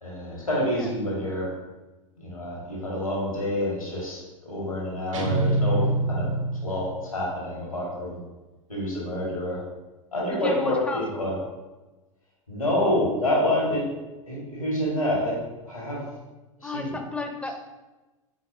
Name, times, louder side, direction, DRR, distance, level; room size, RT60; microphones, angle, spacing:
voice 1, 0.0-1.5 2.2-6.3 6.6-8.2 8.7-9.6 10.1-11.4 12.5-13.9 14.2-15.4 15.6-16.0 16.6-17.0, left 1 dB, 85° left, -4 dB, 1.4 m, -27 dB
sound 1, 5.1-7.2, right 2 dB, 65° right, 0.6 m, -25 dB
voice 2, 10.4-11.3 16.6-17.7, left 2 dB, 5° left, 4 dB, 0.4 m, -33 dB
4.2 x 4.1 x 2.6 m, 1.1 s
figure-of-eight pair, 85°, 17 cm